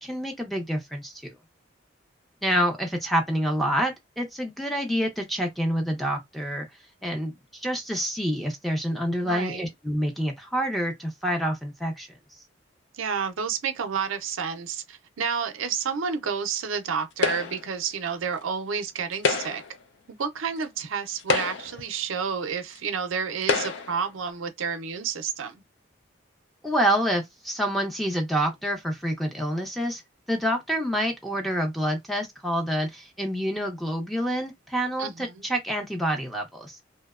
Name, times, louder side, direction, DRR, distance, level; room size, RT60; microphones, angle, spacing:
voice 1, 0.0-1.3 2.4-6.7 7.0-12.1 26.6-30.0 30.3-36.8, equal, ahead, 0.5 m, -27 dB
voice 2, 9.2-9.6 12.9-19.6 20.1-25.6 35.0-35.4, right 6 dB, 80° right, 0.5 m, -30 dB
sound 1, 17.2-17.7 19.1-19.8 20.6-20.7 21.2-21.9 22.7-22.8 23.4-24.0, left 4 dB, 60° left, 0.4 m, -27 dB
2.7 x 2.1 x 2.3 m
head